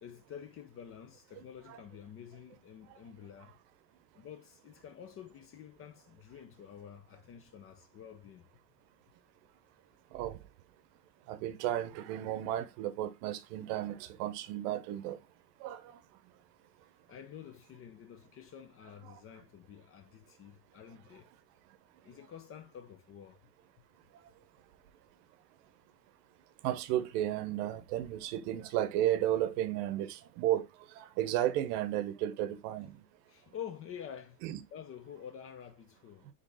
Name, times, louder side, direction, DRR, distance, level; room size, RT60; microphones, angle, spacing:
voice 1, 0.0-3.6 4.2-8.5 17.1-21.3 22.0-23.4 33.3-34.4 34.7-36.3, left 9 dB, 30° left, 0.4 m, -49 dB
voice 2, 1.4-1.8 10.1-10.4 11.3-15.2 15.6-16.0 19.0-19.2 26.6-30.7 30.9-33.0 34.4-34.6, right 12 dB, 70° right, 0.8 m, -33 dB
3.8 x 3.5 x 3.8 m
supercardioid pair, 120°, 48 cm